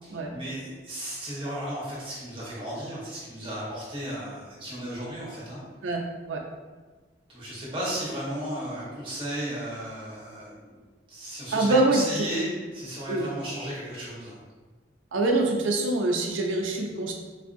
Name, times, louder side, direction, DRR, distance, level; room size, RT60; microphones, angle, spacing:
voice 1, 0.0-5.6 7.3-10.7 11.1-12.5 12.7-14.3, right 1 dB, 30° right, -7 dB, 1.1 m, -34 dB
voice 2, 5.8-6.4 11.5-12.3 13.1-13.3 15.1-17.1, right 2 dB, 90° right, 1 dB, 0.5 m, -25 dB
4.0 x 2.6 x 2.5 m, 1.4 s
head